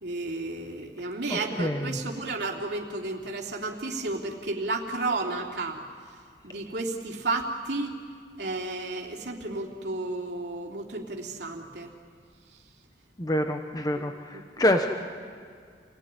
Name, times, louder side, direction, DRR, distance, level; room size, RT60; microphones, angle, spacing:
voice 1, 0.0-5.8 6.4-7.9 8.4-11.9 13.9-14.1 14.3-14.4, right 2 dB, 70° right, 0 dB, 3.1 m, -32 dB
voice 2, 1.3-2.0 13.2-14.9, left 1 dB, 20° left, 5 dB, 1.2 m, -27 dB
29.0 x 18.5 x 9.9 m, 2.1 s
head